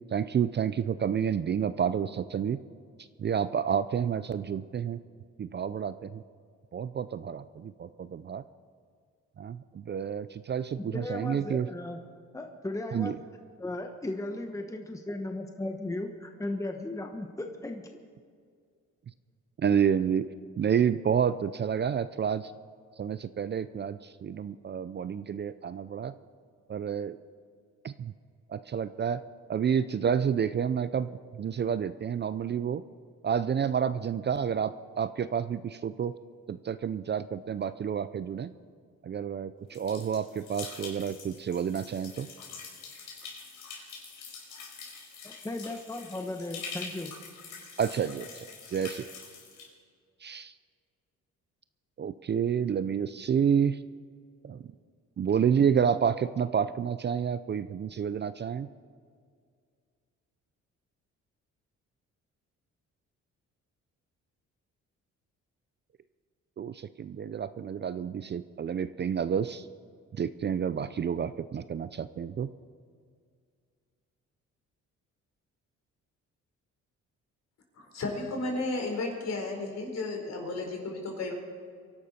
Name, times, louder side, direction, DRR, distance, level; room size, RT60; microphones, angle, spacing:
voice 1, 0.1-2.6 3.2-5.0 5.4-6.2 6.7-8.4 9.4-11.7 12.9-13.2 19.6-20.3 20.6-22.5 23.0-26.1 26.7-27.2 27.8-28.1 28.5-29.2 29.5-32.8 33.2-36.1 36.5-38.5 39.0-42.3 47.8-49.1 50.2-50.5 52.0-53.8 54.4-54.6 55.2-58.7 66.6-69.7 70.2-72.5, right 7 dB, 35° right, 14 dB, 0.5 m, -29 dB
voice 2, 10.9-12.0 12.3-13.2 13.6-17.8 45.2-47.1 47.7-47.8, left 2 dB, 10° left, 4 dB, 1.1 m, -36 dB
sound 1, 39.7-49.7, left 5 dB, 85° left, 4.9 m, -45 dB
voice 3, 77.8-81.3, left 2 dB, 60° left, 2 dB, 4.4 m, -33 dB
24.0 x 11.5 x 4.3 m, 2.1 s
cardioid pair, 90°, 30 cm